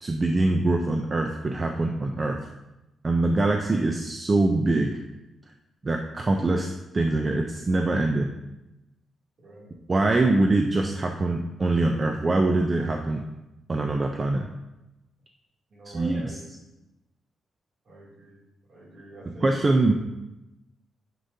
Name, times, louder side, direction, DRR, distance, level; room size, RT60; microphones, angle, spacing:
voice 1, 0.0-2.5 3.0-5.0 5.8-8.3 9.9-13.2 13.7-14.5 15.9-16.4 19.4-19.9, right 2 dB, 25° right, 3 dB, 0.4 m, -24 dB
voice 2, 9.4-9.8 15.7-16.6 17.9-18.4 18.7-19.5, right 2 dB, 45° right, -5 dB, 2.6 m, -45 dB
9.7 x 6.7 x 2.7 m, 0.98 s
wide cardioid pair, 170°, 0 cm